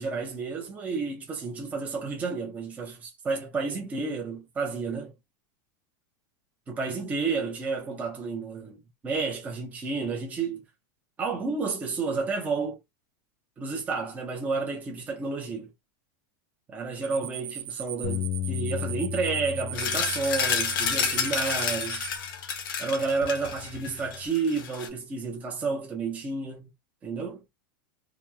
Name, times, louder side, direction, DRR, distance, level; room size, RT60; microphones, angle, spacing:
voice 1, 0.0-5.1 6.7-10.6 11.2-12.8 13.6-15.7 16.7-22.0 22.8-26.7 27.0-27.4, right 4 dB, 15° right, 0.7 m, -31 dB
sound 1, 17.0-22.2, right 11 dB, 70° right, 0.6 m, -38 dB
Bass guitar, 18.0-22.5 23.1-24.3, left 12 dB, 60° left, 0.4 m, -36 dB
sound 2, 19.7-24.9, left 7 dB, 80° left, 0.8 m, -30 dB
2.9 x 2.3 x 2.2 m
supercardioid pair, 165°, 11 cm